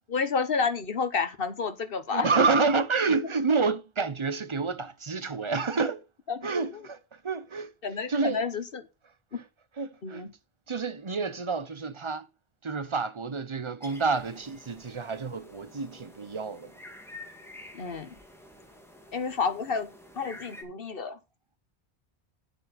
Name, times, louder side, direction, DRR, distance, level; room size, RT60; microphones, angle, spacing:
voice 1, 0.1-2.7 6.3-6.5 7.8-8.8 10.0-10.3 17.7-18.1 19.1-19.9 20.2-21.2, left 5 dB, 60° left, 1.3 m, -30 dB
voice 2, 2.1-6.0 6.4-7.0 7.2-7.7 8.1-8.4 9.8-10.2 10.7-12.3 12.6-16.7, right 4 dB, 30° right, 0.8 m, -28 dB
sound 1, 13.8-20.6, left 1 dB, ahead, 2.1 m, -49 dB
10.5 x 7.8 x 4.2 m
omnidirectional pair, 1.1 m